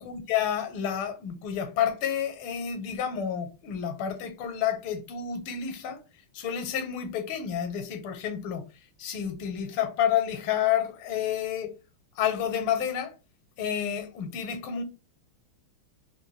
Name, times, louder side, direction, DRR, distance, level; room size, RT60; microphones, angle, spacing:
voice 1, 0.0-6.0 6.3-8.6 9.0-11.7 12.2-13.1 13.6-14.8, left 9 dB, 80° left, 1.5 m, -29 dB
3.8 x 2.6 x 3.1 m
omnidirectional pair, 2.3 m